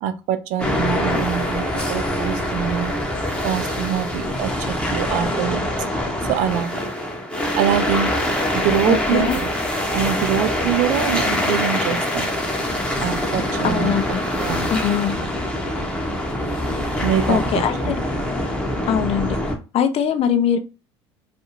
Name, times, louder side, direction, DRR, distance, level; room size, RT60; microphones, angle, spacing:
voice 1, 0.0-5.6 6.3-6.9 7.6-8.1 8.5-9.5 9.9-12.3 13.0-14.0 14.4-14.7 17.0-18.0, right 10 dB, 65° right, 12 dB, 0.4 m, -24 dB
sound 1, 0.6-19.5, left 1 dB, 10° left, 0.8 m, -24 dB
voice 2, 8.9-9.4 13.6-14.2 14.7-15.2 17.3-17.9 18.9-19.4 19.7-20.6, left 8 dB, 45° left, 8 dB, 0.5 m, -21 dB
2.5 x 2.3 x 3.0 m, 0.32 s
hypercardioid pair, 70°, 14 cm